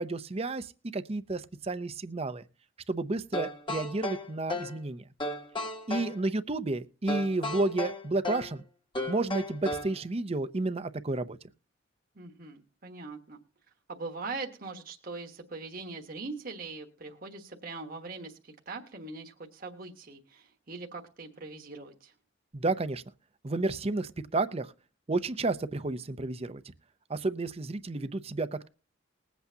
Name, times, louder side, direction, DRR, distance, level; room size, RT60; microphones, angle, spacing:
voice 1, 0.0-2.4 2.9-5.0 5.9-8.6 9.1-11.4 22.5-23.0 23.4-24.7 25.1-26.6 27.1-28.7, right 2 dB, 30° right, 0.6 m, -31 dB
sound 1, 3.3-4.8 5.2-6.2 7.1-8.5 8.9-10.0, left 1 dB, 25° left, 1.2 m, -35 dB
voice 2, 12.1-13.4 13.9-22.1, right 3 dB, 45° right, 1.3 m, -41 dB
20.5 x 8.2 x 2.8 m
head